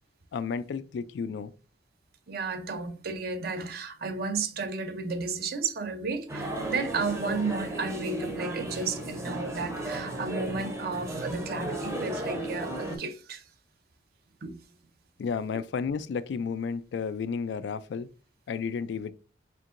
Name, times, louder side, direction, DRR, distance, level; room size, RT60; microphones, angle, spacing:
voice 1, 0.3-1.5 15.2-18.1 18.5-19.1, left 5 dB, 65° left, 0.3 m, -32 dB
voice 2, 2.3-13.5 14.4-14.6, right 4 dB, 55° right, 0.6 m, -33 dB
sound 1, 6.3-13.0, right 1 dB, 15° right, 0.7 m, -34 dB
4.4 x 3.6 x 2.5 m
head